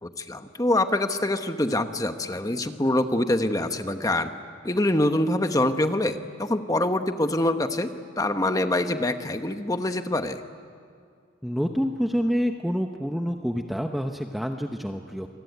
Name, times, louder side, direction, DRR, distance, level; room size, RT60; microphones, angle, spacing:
voice 1, 0.0-4.3 4.6-7.9 8.2-10.4, left 1 dB, 20° left, 8 dB, 1.1 m, -25 dB
voice 2, 11.4-15.3, equal, ahead, 4 dB, 0.8 m, -27 dB
27.0 x 21.0 x 9.5 m, 2.2 s
head